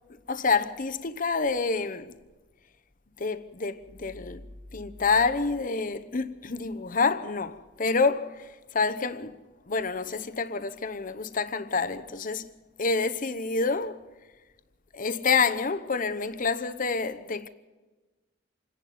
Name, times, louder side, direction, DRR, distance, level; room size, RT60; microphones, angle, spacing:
voice 1, 0.3-2.2 3.2-4.5 4.7-9.4 9.7-12.5 12.8-14.0 14.9-17.5, left 4 dB, 45° left, 0.9 m, -28 dB
27.0 x 11.0 x 9.3 m
head